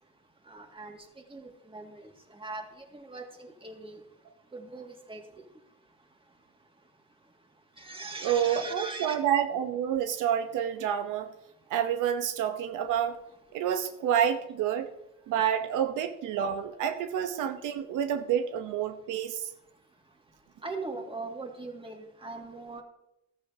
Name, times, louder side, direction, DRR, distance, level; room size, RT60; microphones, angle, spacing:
voice 1, 0.5-1.0 1.3-2.0 2.4-2.6 2.9-4.0 4.5-5.2 7.8-9.2 20.6-22.8, right 3 dB, 15° right, 3 dB, 2.2 m, -40 dB
voice 2, 8.2-11.3 11.7-13.2 13.5-14.9 15.3-19.5, right 9 dB, 90° right, 8 dB, 1.0 m, -28 dB
15.0 x 13.0 x 2.8 m, 0.84 s
cardioid pair, 90°, 30 cm